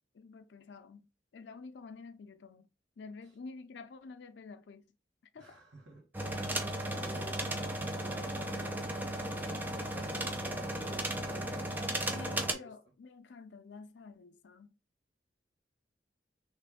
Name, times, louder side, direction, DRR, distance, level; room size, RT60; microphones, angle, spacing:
voice 1, 0.1-2.7 3.0-4.8 5.3-5.6 12.1-14.8, left 4 dB, 75° left, 0.4 m, -49 dB
voice 2, 5.3-6.4 6.9-12.7, right 1 dB, 85° right, 1.3 m, -52 dB
sound 1, 6.1-12.5, right 1 dB, 10° right, 0.4 m, -35 dB
3.2 x 2.5 x 3.4 m
head